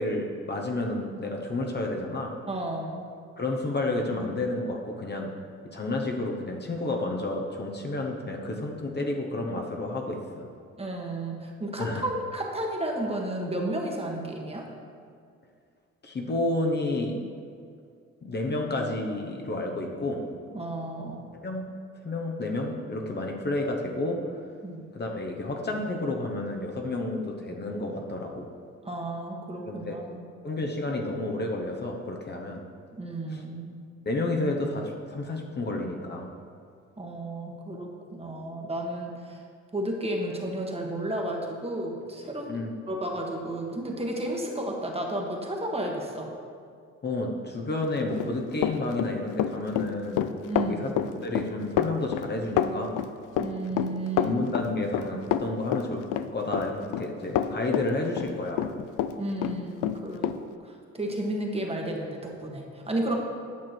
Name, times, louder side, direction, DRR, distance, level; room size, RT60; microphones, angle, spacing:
voice 1, 0.0-2.4 3.4-5.3 5.7-10.5 11.8-12.1 16.0-17.2 18.2-20.3 21.3-21.7 22.0-24.3 24.9-28.5 29.6-30.0 30.4-32.6 33.3-33.4 34.0-36.3 42.5-42.7 47.0-50.2 50.7-53.0 53.7-53.8 54.2-58.7, left 2 dB, 35° left, 1 dB, 1.0 m, -31 dB
voice 2, 2.5-3.0 10.8-14.6 20.5-21.3 24.6-24.8 28.8-30.3 33.0-33.8 37.0-39.4 39.7-42.6 42.9-46.3 50.5-50.9 53.4-54.4 59.2-60.4 60.6-63.2, right 1 dB, 20° right, 0 dB, 1.3 m, -32 dB
Run, 48.0-59.1 59.4-60.4, left 10 dB, 85° left, 0.5 m, -28 dB
9.4 x 6.0 x 4.5 m, 2.3 s
cardioid pair, 90°, 30 cm